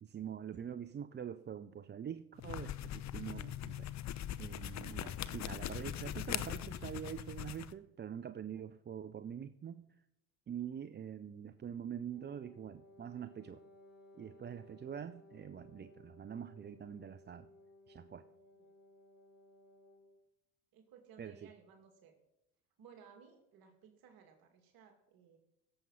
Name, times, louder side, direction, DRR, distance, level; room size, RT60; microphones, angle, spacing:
voice 1, 0.0-3.9 4.4-9.8 10.5-13.6 14.1-17.5 17.9-18.2 21.2-21.5, right 8 dB, 25° right, 13 dB, 0.6 m, -45 dB
sound 1, 2.4-7.7, left 11 dB, 40° left, 0.8 m, -41 dB
Wind instrument woodwind instrument, 12.1-20.2, left 2 dB, 25° left, 3.5 m, -60 dB
voice 2, 20.7-22.1 22.8-25.4, right 7 dB, 60° right, 4 dB, 2.4 m, -59 dB
17.0 x 7.5 x 5.7 m, 0.87 s
hypercardioid pair, 70°, 41 cm